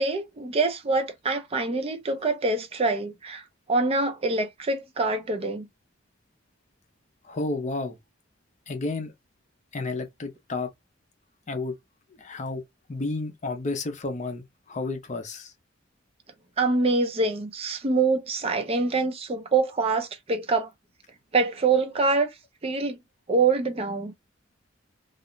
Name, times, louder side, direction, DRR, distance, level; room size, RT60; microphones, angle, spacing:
voice 1, 0.0-3.4 3.7-5.7 16.6-20.7 21.3-22.3 22.6-22.9 23.3-24.1, right 3 dB, 30° right, 0.4 m, -25 dB
voice 2, 7.2-8.0 8.7-9.1 9.7-10.7 11.5-11.8 12.2-12.6 12.9-15.5, left 3 dB, 40° left, 0.5 m, -31 dB
2.4 x 2.0 x 3.0 m
head